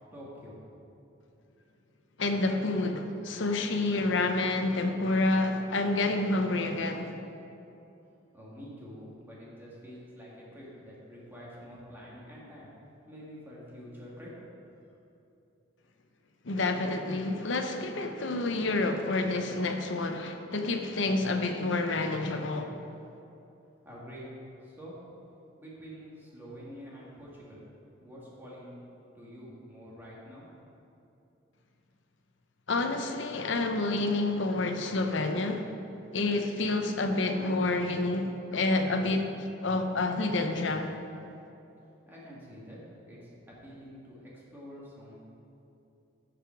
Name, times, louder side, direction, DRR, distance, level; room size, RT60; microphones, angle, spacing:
voice 1, 0.1-0.6 8.3-12.7 13.1-14.3 14.7-14.8 23.8-24.3 24.6-25.0 25.6-27.7 28.0-28.8 29.1-30.5 42.1-42.8 43.0-45.1, equal, 10° right, 2.0 m, -47 dB
voice 2, 2.2-7.2 16.4-22.8 32.7-35.8 36.1-39.4 39.6-40.9, left 2 dB, 65° left, 0.7 m, -28 dB
13.5 x 5.1 x 4.6 m
head